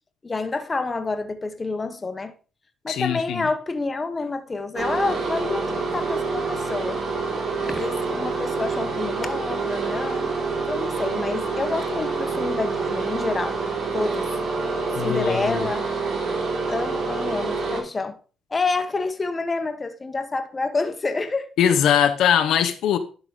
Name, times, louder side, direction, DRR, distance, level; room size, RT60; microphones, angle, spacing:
voice 1, 0.2-2.3 2.8-7.0 7.7-10.3 10.7-13.6 13.9-14.3 15.0-15.9 16.7-18.2 18.5-21.5, left 3 dB, 25° left, 1.1 m, -28 dB
voice 2, 2.9-3.5 15.0-15.7 21.6-23.0, left 9 dB, 75° left, 0.8 m, -21 dB
sound 1, 4.8-17.8, right 4 dB, 75° right, 3.3 m, -27 dB
11.5 x 3.9 x 4.8 m
cardioid pair, 100°, 0 cm